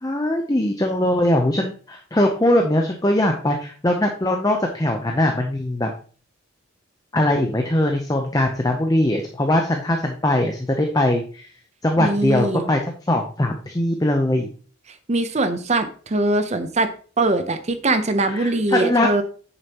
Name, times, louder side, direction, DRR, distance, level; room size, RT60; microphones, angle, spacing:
voice 1, 0.0-5.9 7.1-11.5 11.8-12.8 13.1-14.5 18.3-19.2, left 1 dB, 15° left, 3 dB, 0.7 m, -21 dB
voice 2, 12.0-12.7 15.1-16.9 17.2-19.2, right 2 dB, 30° right, 9 dB, 0.7 m, -21 dB
8.6 x 6.9 x 2.9 m, 0.40 s
head